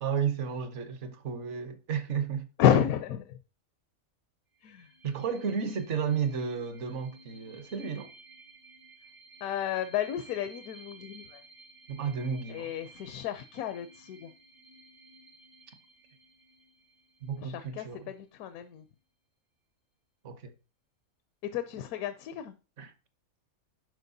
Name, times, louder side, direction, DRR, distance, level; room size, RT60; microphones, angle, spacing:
voice 1, 0.0-2.5 5.0-8.1 11.9-12.7 17.2-18.1 20.2-20.5 22.8-22.9, right 6 dB, 60° right, 1.1 m, -33 dB
voice 2, 2.6-3.2 4.6-4.8 9.4-11.4 12.5-14.3 17.4-18.8 21.5-22.5, left 10 dB, 80° left, 1.0 m, -30 dB
sound 1, 4.6-17.9, right 3 dB, 85° right, 3.6 m, -55 dB
11.0 x 4.3 x 2.7 m
omnidirectional pair, 1.5 m